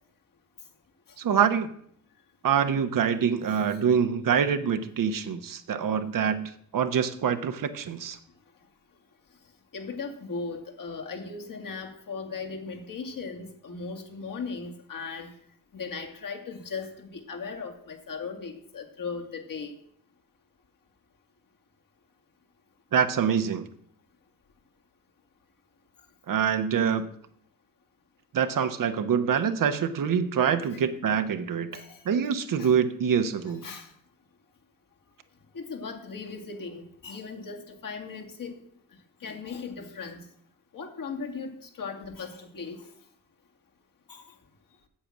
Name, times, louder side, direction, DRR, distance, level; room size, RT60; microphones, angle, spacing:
voice 1, 1.2-1.7 2.4-8.2 22.9-23.6 26.3-27.1 28.3-33.6, right 7 dB, 50° right, 9 dB, 1.0 m, -25 dB
voice 2, 9.7-15.3 15.7-19.7 30.7-30.9 31.7-32.0 32.6-32.7 33.6-33.9 35.5-38.6 39.2-40.2 40.7-42.9 44.1-44.3, left 4 dB, 55° left, 4 dB, 2.0 m, -38 dB
8.7 x 7.2 x 6.0 m, 0.65 s
hypercardioid pair, 45°, 41 cm